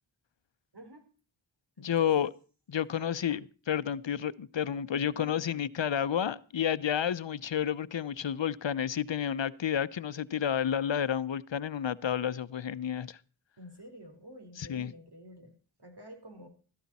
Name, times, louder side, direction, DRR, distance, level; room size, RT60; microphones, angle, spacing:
voice 1, 0.7-1.1 1.8-2.1 2.9-3.2 5.1-5.5 13.6-16.5, equal, 55° right, 4.4 m, -50 dB
voice 2, 1.8-2.3 2.7-13.2 14.6-14.9, left 9 dB, 70° left, 0.8 m, -30 dB
15.5 x 14.0 x 4.2 m
cardioid pair, 40°, 46 cm